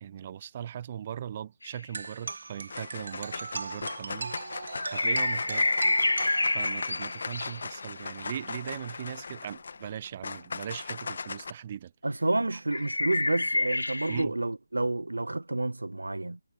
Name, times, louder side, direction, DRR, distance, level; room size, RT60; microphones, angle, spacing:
voice 1, 0.0-4.4 4.9-5.7 6.5-11.9 12.5-12.6 14.1-14.3, right 9 dB, 30° right, 0.8 m, -39 dB
sound 1, 1.6-1.8 4.7-7.7 12.7-14.2, left 2 dB, 80° left, 0.3 m, -28 dB
sound 2, 1.9-7.0, right 4 dB, 55° right, 1.6 m, -39 dB
sound 3, 2.0-2.4 2.7-11.5, left 5 dB, 50° left, 1.9 m, -39 dB
voice 2, 12.0-16.4, right 2 dB, 80° right, 0.9 m, -29 dB
figure-of-eight pair, 155°, 0 cm